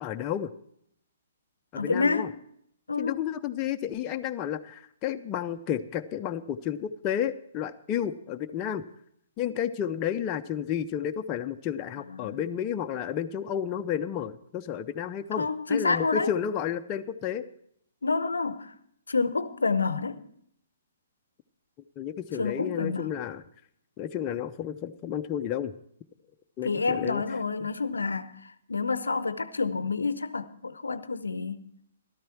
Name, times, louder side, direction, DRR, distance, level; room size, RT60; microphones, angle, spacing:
voice 1, 0.0-0.5 1.7-2.3 3.0-8.8 9.4-17.4 22.0-23.4 24.0-25.8 26.6-27.2, left 9 dB, 30° left, 0.6 m, -31 dB
voice 2, 1.7-2.3 2.9-3.2 12.1-12.4 15.4-16.3 18.0-18.7 19.1-20.2 22.4-23.1 26.6-31.6, left 4 dB, 80° left, 0.7 m, -28 dB
13.5 x 12.5 x 4.5 m
figure-of-eight pair, 125°, 0 cm